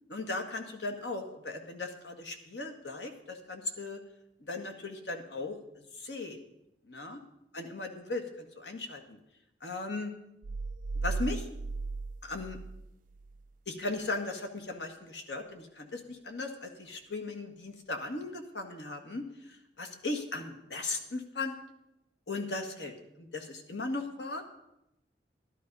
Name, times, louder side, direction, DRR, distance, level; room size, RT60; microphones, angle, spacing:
voice 1, 0.1-4.0 4.4-6.4 6.8-7.2 7.5-9.2 9.6-10.1 11.0-11.5 12.2-12.6 13.7-21.6 22.3-24.4, left 2 dB, 80° left, 5 dB, 1.8 m, -37 dB
sound 1, 10.4-13.4, right 3 dB, 50° right, 0.4 m, -36 dB
12.5 x 12.0 x 5.4 m, 0.85 s
head